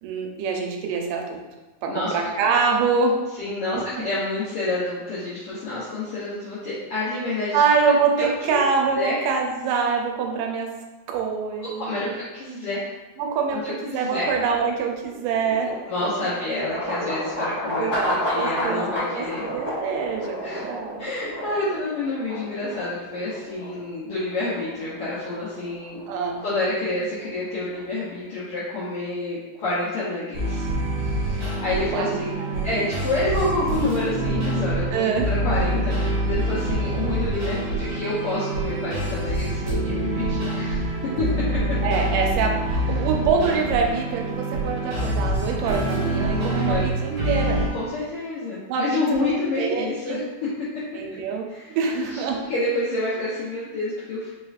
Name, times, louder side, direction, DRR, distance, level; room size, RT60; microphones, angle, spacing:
voice 1, 0.0-1.4 1.8-3.2 4.0-4.1 7.5-10.8 11.1-12.1 13.2-15.8 17.8-21.1 26.1-26.4 31.9-32.8 34.9-35.3 41.8-47.6 48.7-49.3 49.6-50.2 50.9-51.5 51.8-52.4, right 5 dB, 90° right, 1 dB, 2.1 m, -25 dB
voice 2, 3.4-7.6 8.2-8.3 8.9-9.2 11.8-12.9 13.5-14.3 15.9-19.5 20.4-20.6 21.0-26.0 26.4-30.6 31.0-32.3 32.6-40.9 41.2-41.4 43.0-43.1 46.5-46.9 47.7-50.5 51.5-52.2 52.5-54.3, left 2 dB, 85° left, -9 dB, 1.3 m, -28 dB
sound 1, 14.6-28.5, left 1 dB, 35° left, 1.0 m, -32 dB
sound 2, 30.3-47.7, right 1 dB, 55° right, 1.9 m, -26 dB
5.2 x 3.1 x 2.4 m, 1.1 s
omnidirectional pair, 3.6 m